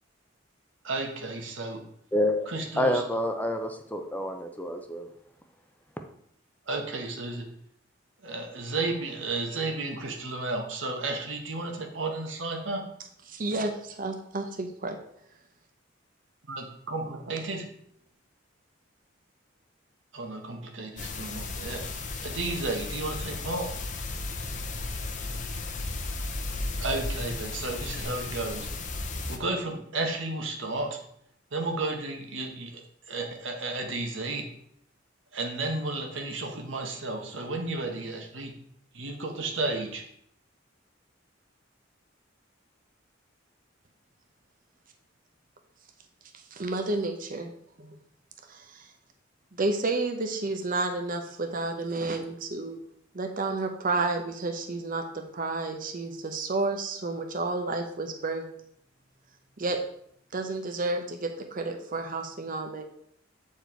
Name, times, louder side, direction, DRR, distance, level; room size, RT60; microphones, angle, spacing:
voice 1, 0.8-1.8 2.5-3.0 6.7-7.5 8.2-12.8 16.5-17.6 20.1-21.8 22.2-23.7 26.8-28.7 29.3-31.0 31.5-34.4 35.3-38.5 38.9-40.0, right 2 dB, 80° right, 3 dB, 1.4 m, -33 dB
voice 2, 2.1-2.5 2.8-5.1, left 1 dB, 10° left, 5 dB, 0.6 m, -28 dB
voice 3, 13.3-15.0 46.3-47.5 47.8-48.0 48.5-48.9 49.5-52.8 53.1-58.5 59.6-59.8 60.3-62.8, right 3 dB, 45° right, 5 dB, 0.8 m, -31 dB
sound 1, 21.0-29.4, left 3 dB, 40° left, 0.8 m, -34 dB
8.3 x 4.7 x 4.5 m, 0.69 s
head